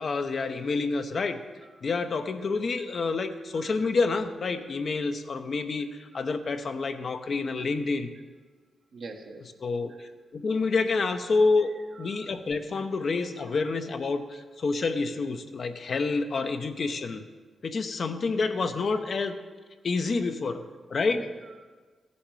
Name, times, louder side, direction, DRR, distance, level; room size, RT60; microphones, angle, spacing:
voice 1, 0.0-1.4 1.8-8.1 9.6-11.7 12.0-17.2 17.6-19.3 19.8-20.6 20.9-21.2, left 4 dB, 55° left, 7 dB, 0.8 m, -28 dB
voice 2, 3.3-3.8 6.1-6.2 8.9-9.5 9.9-10.1 11.6-12.3 12.7-12.8 13.5-13.8 14.3-14.4 19.2-19.3 21.1-21.6, right 3 dB, 70° right, 2 dB, 1.4 m, -46 dB
14.5 x 7.1 x 4.8 m, 1.4 s
cardioid pair, 65°, 0 cm